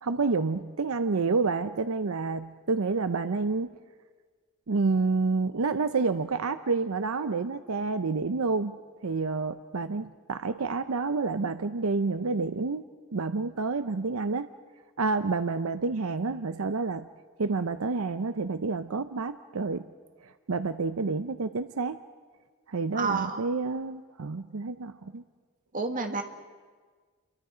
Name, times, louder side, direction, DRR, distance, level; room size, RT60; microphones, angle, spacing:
voice 1, 0.0-3.7 4.7-8.7 9.0-12.8 13.1-14.5 15.0-17.1 17.4-19.9 20.2-22.0 22.7-25.2, right 4 dB, 80° right, 11 dB, 0.7 m, -29 dB
voice 2, 22.9-23.4 25.7-26.2, right 4 dB, 40° right, 5 dB, 1.8 m, -29 dB
29.5 x 23.0 x 5.1 m, 1.5 s
head